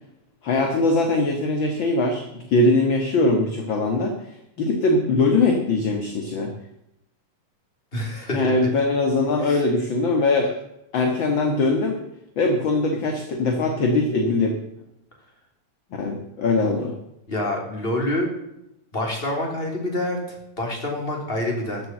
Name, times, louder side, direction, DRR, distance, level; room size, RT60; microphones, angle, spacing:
voice 1, 0.4-4.3 4.6-6.5 8.3-10.5 10.9-12.0 12.4-14.6 15.9-16.9, left 2 dB, 45° left, 4 dB, 2.0 m, -21 dB
voice 2, 7.9-8.5 9.4-9.6 17.3-18.3 18.9-21.8, left 1 dB, 20° left, 0 dB, 3.8 m, -27 dB
14.5 x 8.0 x 7.7 m, 0.84 s
omnidirectional pair, 3.3 m